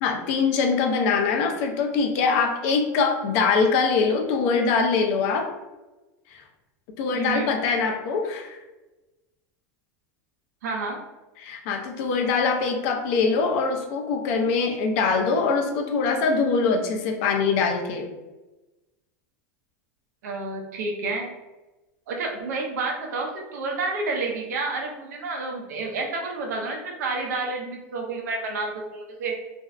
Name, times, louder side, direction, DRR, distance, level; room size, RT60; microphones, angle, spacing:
voice 1, 0.0-5.5 6.3-6.4 7.0-8.6 11.4-18.1, left 4 dB, 60° left, 3 dB, 0.5 m, -23 dB
voice 2, 7.1-7.5 10.6-11.0 20.2-21.3 22.1-29.3, right 3 dB, 85° right, 1 dB, 0.6 m, -30 dB
2.5 x 2.0 x 2.4 m, 1.1 s
supercardioid pair, 130°, 9 cm